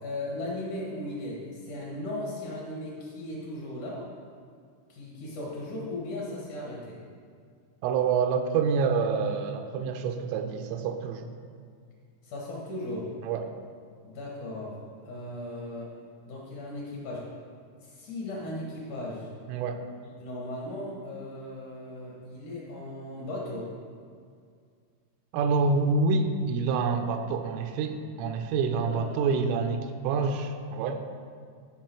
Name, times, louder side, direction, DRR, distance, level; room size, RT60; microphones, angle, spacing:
voice 1, 0.0-4.1 4.9-7.0 12.2-13.1 14.0-14.8 15.0-15.9 16.3-17.3 17.8-19.3 20.0-23.7 28.7-29.3, left 1 dB, 60° left, -4 dB, 2.1 m, -37 dB
voice 2, 7.8-11.3 13.2-13.4 19.5-19.8 25.3-31.0, right 4 dB, 90° right, 5 dB, 3.2 m, -27 dB
15.5 x 5.3 x 4.5 m, 2.1 s
omnidirectional pair, 5.7 m